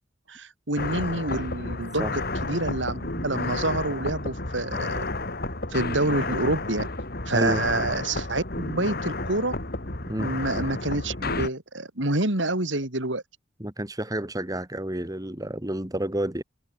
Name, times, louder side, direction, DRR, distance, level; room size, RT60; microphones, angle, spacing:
voice 1, 0.3-5.0 5.7-6.9 7.3-9.5 10.2-13.2, right 2 dB, 70° right, 4.5 m, -27 dB
sound 1, 0.8-11.5, left 2 dB, 55° left, 3.6 m, -31 dB
voice 2, 7.3-7.6 10.1-10.3 13.6-16.4, right 1 dB, 20° right, 2.3 m, -29 dB
head